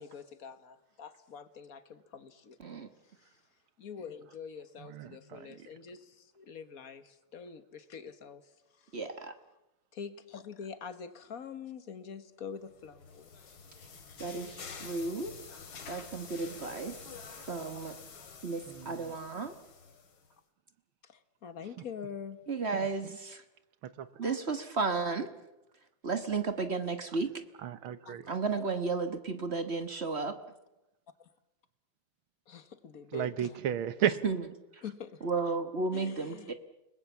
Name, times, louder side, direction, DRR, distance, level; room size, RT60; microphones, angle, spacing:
voice 1, 0.0-2.6 3.8-8.4 9.9-13.5 21.0-22.4 24.2-24.4 28.1-28.2 28.5-28.6 32.5-33.6 34.8-35.2 35.9-36.5, left 7 dB, 45° left, 1.7 m, -45 dB
voice 2, 4.8-5.6 18.7-19.2 22.7-23.1 24.0-24.1 27.6-28.3 33.1-34.1, right 9 dB, 85° right, 1.9 m, -34 dB
voice 3, 8.9-9.3 14.2-15.3 15.9-17.0 17.5-17.9 18.4-19.5 22.5-23.4 24.2-25.3 26.0-27.3 28.3-30.4 34.2-34.4 35.2-36.5, right 4 dB, 35° right, 1.3 m, -33 dB
sound 1, 12.7-20.3, left 5 dB, 85° left, 3.1 m, -48 dB
30.0 x 20.5 x 7.1 m
omnidirectional pair, 2.2 m